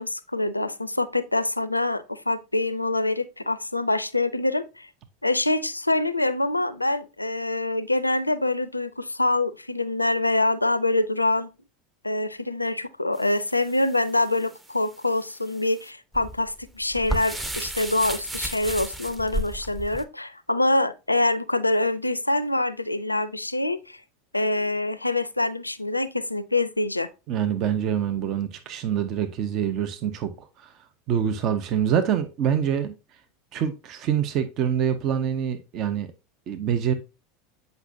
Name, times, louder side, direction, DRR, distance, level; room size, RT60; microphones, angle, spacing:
voice 1, 0.0-4.9 5.2-11.5 12.0-24.0 24.3-27.1, left 2 dB, 85° left, 0.4 m, -25 dB
sound 1, 13.2-20.0, right 1 dB, 15° right, 0.8 m, -34 dB
voice 2, 27.3-30.8 31.1-32.9 33.5-36.1 36.5-36.9, right 8 dB, 40° right, 0.7 m, -25 dB
8.1 x 5.3 x 2.6 m
figure-of-eight pair, 80°, 0 cm